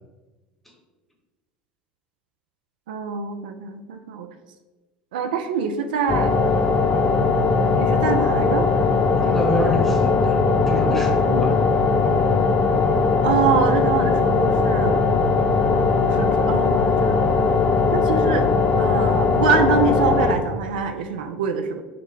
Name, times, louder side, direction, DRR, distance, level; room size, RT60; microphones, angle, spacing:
voice 1, 2.9-4.3 5.1-6.4 7.8-8.7 13.2-15.0 16.1-17.3 17.9-18.5 18.8-21.8, right 6 dB, 80° right, 6 dB, 0.4 m, -24 dB
sound 1, 6.1-20.3, left 4 dB, 30° left, 0.5 m, -19 dB
voice 2, 8.6-11.6, equal, 5° left, 0 dB, 1.1 m, -28 dB
5.6 x 2.1 x 3.8 m, 1.3 s
hypercardioid pair, 75°, 5 cm